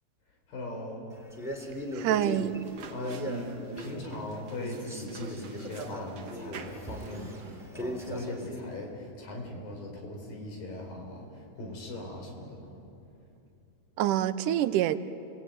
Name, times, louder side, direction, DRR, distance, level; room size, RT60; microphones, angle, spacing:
voice 1, 0.5-1.1 2.9-12.7, left 1 dB, 90° left, 1 dB, 6.2 m, -39 dB
Male speech man speaking, 1.3-4.3 4.6-8.7, equal, ahead, 2.8 m, -39 dB
voice 2, 2.0-2.6 14.0-15.0, right 12 dB, 75° right, 12 dB, 2.3 m, -26 dB
sound 1, 2.6-7.7, right 6 dB, 55° right, 2.1 m, -48 dB
29.5 x 19.0 x 9.4 m, 2.7 s
omnidirectional pair, 3.9 m